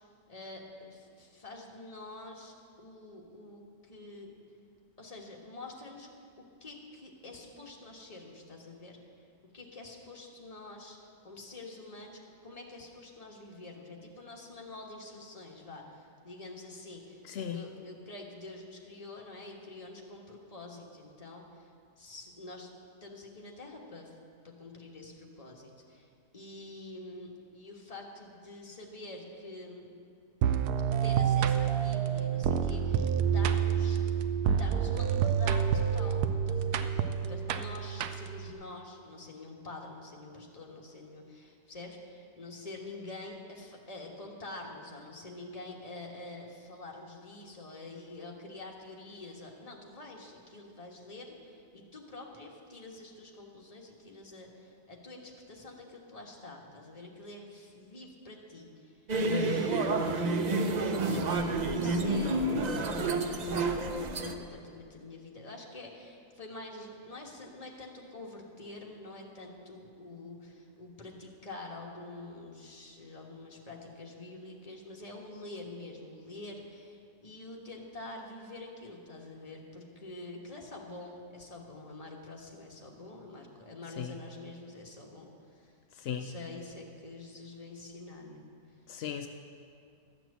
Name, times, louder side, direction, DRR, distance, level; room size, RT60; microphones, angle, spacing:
voice 1, 0.3-4.3 5.0-6.1 6.4-9.0 9.5-11.0 11.2-17.2 17.5-21.7 22.0-22.7 23.0-24.1 24.4-29.9 31.0-34.0 34.4-37.0 37.3-59.1 59.3-60.5 61.1-85.8 86.1-88.5, left 2 dB, 25° left, -1 dB, 1.3 m, -47 dB
voice 2, 17.3-17.6 59.3-59.7 84.0-84.1 86.0-86.3 88.9-89.3, left 7 dB, 75° left, 6 dB, 0.5 m, -35 dB
sound 1, 30.4-38.5, right 8 dB, 85° right, 1.1 m, -28 dB
sound 2, 59.1-64.3, right 2 dB, 65° right, 0.4 m, -29 dB
13.0 x 6.0 x 8.2 m, 2.3 s
omnidirectional pair, 1.6 m